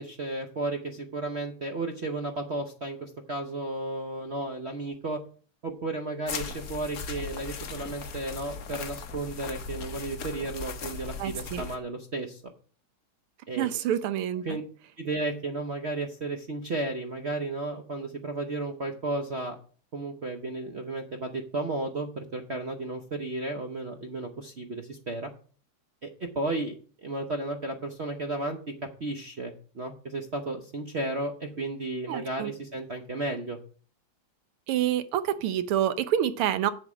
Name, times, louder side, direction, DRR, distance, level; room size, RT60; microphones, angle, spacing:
voice 1, 0.0-5.2 5.6-12.4 13.5-13.7 14.4-14.6 15.0-19.5 19.9-25.3 26.0-26.7 27.0-28.6 29.0-33.6, right 2 dB, 60° right, 4 dB, 0.6 m, -33 dB
sound 1, 6.3-11.8, left 5 dB, 50° left, 1.2 m, -38 dB
voice 2, 11.2-11.6 13.6-14.4 32.1-32.5 34.7-36.7, right 11 dB, 85° right, 13 dB, 1.7 m, -27 dB
7.7 x 7.5 x 5.0 m, 0.43 s
omnidirectional pair, 2.4 m